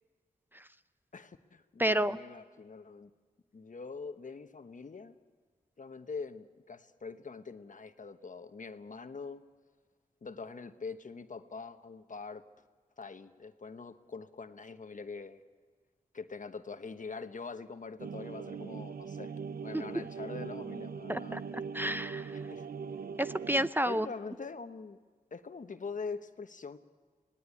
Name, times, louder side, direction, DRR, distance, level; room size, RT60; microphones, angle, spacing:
voice 1, 1.1-3.1 3.5-5.2 5.8-9.4 10.2-12.4 13.0-15.4 16.1-19.3 19.6-21.5 22.3-22.7 23.8-25.0 25.3-26.8, left 4 dB, 60° left, 9 dB, 1.1 m, -44 dB
voice 2, 1.8-2.2 19.7-19.8 21.1-21.4 21.7-22.3 23.2-24.1, right 1 dB, 15° right, 13 dB, 0.6 m, -30 dB
sound 1, 18.0-23.7, right 6 dB, 80° right, 0.7 m, -41 dB
26.5 x 18.0 x 8.4 m, 1.4 s
cardioid pair, 45°, 15 cm